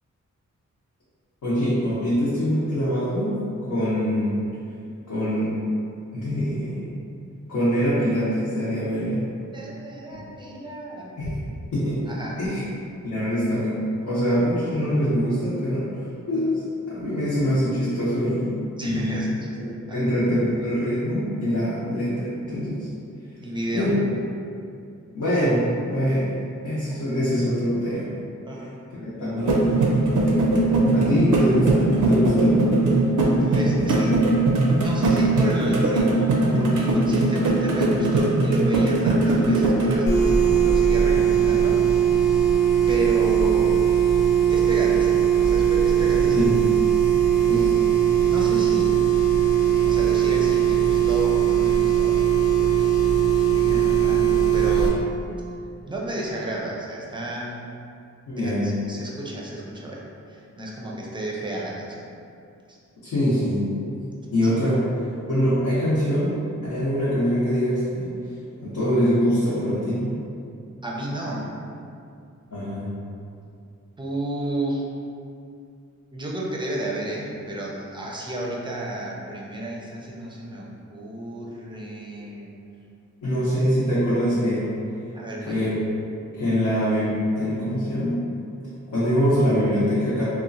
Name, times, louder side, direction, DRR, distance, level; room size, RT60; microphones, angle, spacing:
voice 1, 1.4-4.4 5.1-5.5 6.1-6.9 7.5-9.2 10.1-10.2 11.2-11.4 11.7-12.0 12.4-12.6 13.0-15.8 16.3-19.2 19.9-22.9 23.7-23.9 25.1-26.4 26.6-28.1 29.0-29.9 30.9-32.7 46.3-46.6 47.5-47.7 58.3-58.8 63.0-63.7 64.3-64.9 65.3-66.4 66.7-68.1 68.6-70.1 72.5-72.9 83.2-84.7 85.5-85.8 86.4-88.3 88.9-90.2, equal, 75° left, -11 dB, 0.8 m, -24 dB
voice 2, 9.5-11.2 12.1-12.5 18.8-19.5 19.9-20.1 23.4-23.9 28.5-28.8 33.4-34.3 34.8-41.8 42.9-43.8 44.5-46.5 47.5-49.0 49.5-52.7 53.0-53.2 53.5-55.0 55.9-57.7 58.4-60.0 60.3-62.0 62.7-62.8 70.8-71.4 74.0-74.9 76.1-82.5 85.1-85.7, right 1 dB, 15° right, -4 dB, 0.5 m, -32 dB
sound 1, 29.4-40.0, right 2 dB, 90° right, 0.5 m, -20 dB
sound 2, 40.1-54.9, right 9 dB, 35° left, 0.5 m, -19 dB
2.9 x 2.2 x 2.5 m, 2.5 s
wide cardioid pair, 90°, 30 cm